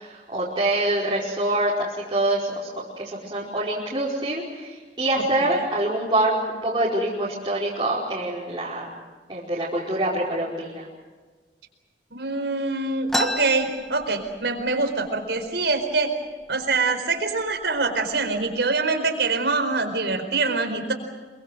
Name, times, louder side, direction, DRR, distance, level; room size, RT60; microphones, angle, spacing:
voice 1, 0.0-2.7 3.0-8.9 9.3-10.8, right 1 dB, 25° right, -8 dB, 5.1 m, -25 dB
voice 2, 12.1-16.1 16.5-20.9, right 3 dB, 80° right, 6 dB, 4.6 m, -24 dB
sound 1, 13.1-14.7 15.1-15.2 15.4-16.0 16.6-16.8 17.5-17.7 18.1-18.6, left 1 dB, ahead, 1.3 m, -31 dB
28.0 x 24.0 x 6.5 m, 1.4 s
head